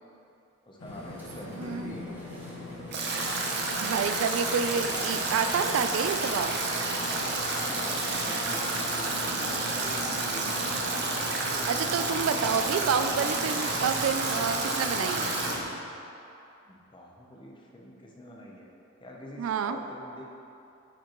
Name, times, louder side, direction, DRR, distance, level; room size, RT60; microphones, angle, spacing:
voice 1, 0.7-2.1 7.3-10.7 16.6-18.7 19.0-20.2, equal, 25° left, -1 dB, 0.7 m, -45 dB
sound 1, 0.8-15.6, left 1 dB, 80° left, 1.1 m, -40 dB
sound 2, 0.9-14.1, equal, 10° right, 1.0 m, -50 dB
voice 2, 1.6-1.9 3.7-6.6 11.7-15.4 19.4-19.8, right 6 dB, 85° right, 9 dB, 0.3 m, -29 dB
Stream / Drip / Trickle dribble, 2.9-15.6, right 3 dB, 55° right, 0.8 m, -30 dB
8.7 x 5.1 x 3.0 m, 2.8 s
head